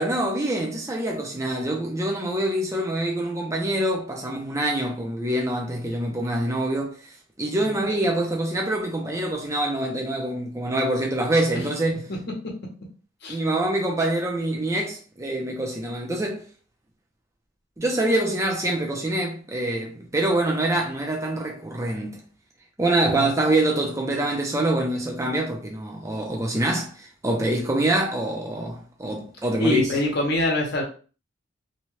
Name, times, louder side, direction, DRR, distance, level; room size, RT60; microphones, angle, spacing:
voice 1, 0.0-7.0 7.4-12.0 13.3-16.4 17.8-22.2 22.8-29.9, right 1 dB, 15° right, 0.5 m, -25 dB
voice 2, 29.6-30.8, left 1 dB, 55° left, 0.9 m, -24 dB
2.8 x 2.3 x 3.1 m
head